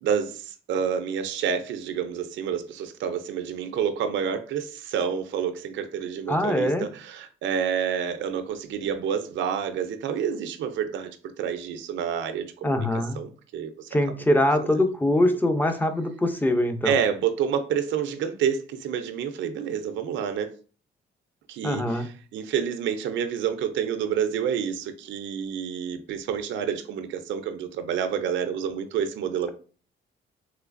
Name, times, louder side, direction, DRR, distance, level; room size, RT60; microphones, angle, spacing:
voice 1, 0.0-12.9 13.2-13.9 16.8-20.5 21.5-29.5, right 8 dB, 70° right, 0.4 m, -28 dB
voice 2, 6.3-6.9 12.6-13.2 13.9-16.9 21.6-22.1, left 1 dB, 10° left, 0.5 m, -23 dB
3.2 x 3.1 x 2.5 m
cardioid pair, 90°, 20 cm